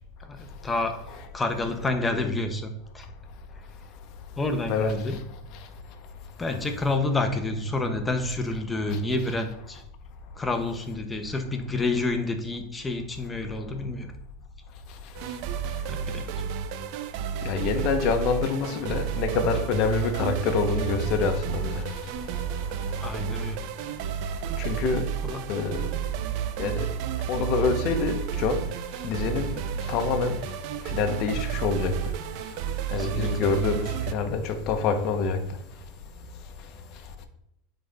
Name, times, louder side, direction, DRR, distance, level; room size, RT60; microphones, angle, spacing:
voice 1, 0.2-1.0 1.3-3.1 4.4-5.2 6.4-9.8 10.4-14.1 15.9-16.3 23.0-23.6 25.2-25.4 32.9-33.5, left 2 dB, 15° left, 0.9 m, -29 dB
sound 1, 15.1-34.1, right 9 dB, 60° right, 0.5 m, -31 dB
voice 2, 17.4-21.8 24.6-25.1 25.5-25.8 26.6-26.9 27.3-28.6 29.0-29.5 29.9-30.4 30.9-31.9 32.9-35.4, left 5 dB, 50° left, 0.9 m, -26 dB
8.4 x 4.0 x 3.5 m
supercardioid pair, 125°, 0 cm